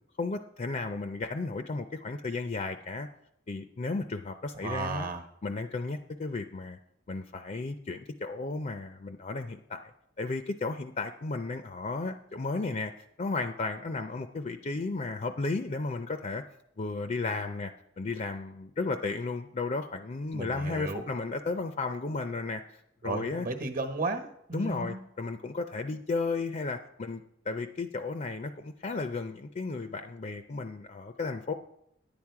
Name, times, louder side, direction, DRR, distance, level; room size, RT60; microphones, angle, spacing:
voice 1, 0.2-3.1 3.5-5.1 5.4-6.8 7.1-9.9 10.2-12.9 13.2-16.4 16.8-17.7 18.0-23.5 24.5-31.5, left 3 dB, 40° left, 8 dB, 0.5 m, -34 dB
voice 2, 4.6-5.2 20.3-21.0 23.0-25.0, right 3 dB, 50° right, 7 dB, 1.2 m, -34 dB
10.5 x 8.9 x 4.7 m, 0.74 s
head